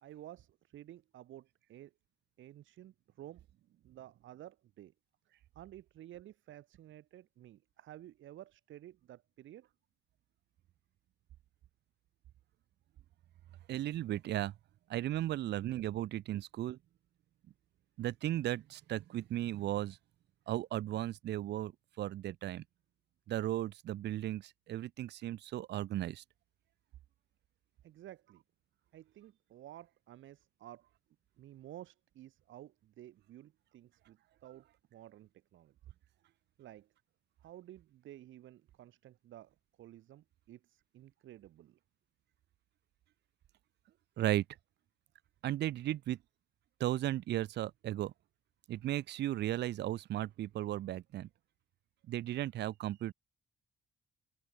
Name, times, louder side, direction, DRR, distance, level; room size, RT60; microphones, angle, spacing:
voice 1, 0.0-1.9 2.4-4.9 5.5-9.7 27.8-28.4 28.9-30.9 31.4-35.7 36.6-36.9 37.4-41.8, right 13 dB, 75° right, 1.6 m, -53 dB
voice 2, 13.7-14.5 14.9-16.8 18.0-20.0 20.5-21.7 22.0-22.6 23.3-26.2 44.2-44.4 45.4-46.2 46.8-48.1 48.7-51.3 52.1-53.1, right 13 dB, 60° right, 0.4 m, -35 dB
cardioid pair, 90°, 20 cm